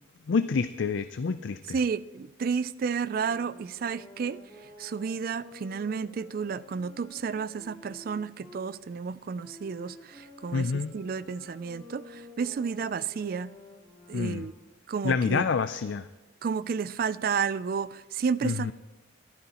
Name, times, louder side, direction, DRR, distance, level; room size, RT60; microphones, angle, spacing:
voice 1, 0.3-1.6 10.5-10.9 14.1-14.4 15.0-16.1 18.4-18.7, left 5 dB, 65° left, 0.4 m, -27 dB
voice 2, 1.7-13.5 14.1-14.5 14.9-15.5 16.4-18.7, right 6 dB, 45° right, 0.3 m, -31 dB
sound 1, 2.9-8.6 9.3-14.7, left 2 dB, 10° right, 4.7 m, -51 dB
25.0 x 10.5 x 2.9 m
head